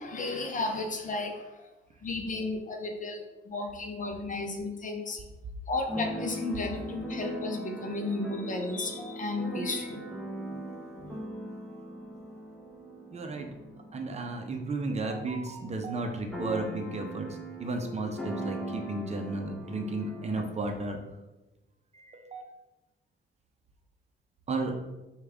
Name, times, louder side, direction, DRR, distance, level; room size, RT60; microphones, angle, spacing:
voice 1, 0.0-1.7 2.0-5.2 5.7-10.0 11.0-11.2, left 2 dB, 40° left, 4 dB, 0.7 m, -34 dB
Keyboard (musical), 5.9-15.4 15.7-15.8 16.0-20.4, equal, 5° left, 0.8 m, -39 dB
voice 2, 13.1-13.5 13.9-17.3 17.6-21.0 21.9-22.4 24.5-24.7, right 3 dB, 35° right, 3 dB, 0.6 m, -33 dB
5.2 x 2.4 x 3.5 m, 1.1 s
cardioid pair, 90°, 20 cm